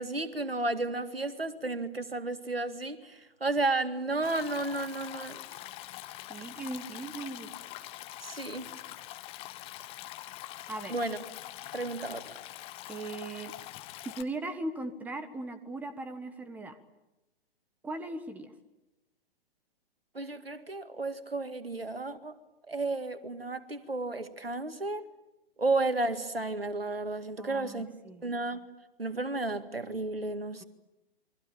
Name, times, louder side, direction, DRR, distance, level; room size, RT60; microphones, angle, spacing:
voice 1, 0.0-5.4 8.2-8.7 10.9-11.2 11.7-12.2 20.1-22.3 22.7-25.0 25.6-27.9 28.2-28.6 29.0-30.6, right 2 dB, 80° right, 11 dB, 2.1 m, -32 dB
Stream, 4.2-14.2, left 15 dB, 20° left, 1.2 m, -44 dB
voice 2, 6.3-7.5 10.7-10.9 12.9-13.5 14.0-16.8 17.8-18.5 27.4-28.2, right 2 dB, 5° right, 11 dB, 1.4 m, -38 dB
28.5 x 23.0 x 9.0 m, 0.96 s
figure-of-eight pair, 120°, 29 cm